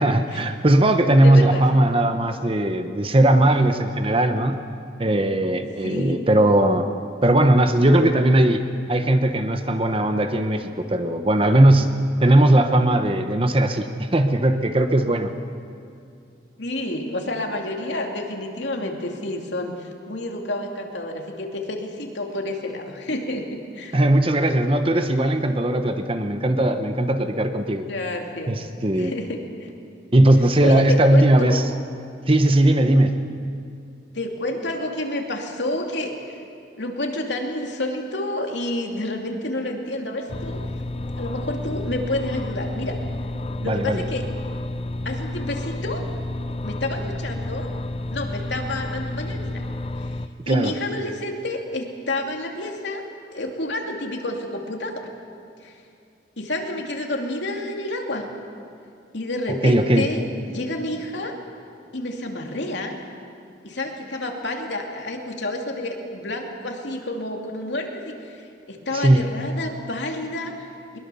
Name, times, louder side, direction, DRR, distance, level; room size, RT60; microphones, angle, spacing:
voice 1, 0.0-4.6 5.0-6.9 7.2-8.6 8.9-11.9 12.2-15.3 23.9-27.9 28.5-29.1 30.1-31.6 32.3-33.2 43.6-44.0 50.5-50.8 59.6-60.1 68.9-69.3, right 1 dB, 30° right, 8 dB, 1.0 m, -18 dB
voice 2, 1.2-1.8 5.8-6.3 16.6-24.0 27.9-28.5 28.9-29.7 30.6-31.6 34.1-36.4 36.8-40.6 41.1-43.0 43.6-44.3 45.0-46.1 46.6-47.7 48.1-49.6 50.0-53.0 53.3-55.1 55.6-55.8 56.4-58.3 59.1-61.3 61.9-62.9 63.6-71.0, left 1 dB, 75° left, 2 dB, 2.7 m, -29 dB
sound 1, 40.3-50.3, left 1 dB, 30° left, 0.6 m, -30 dB
22.0 x 21.5 x 7.0 m, 2.5 s
head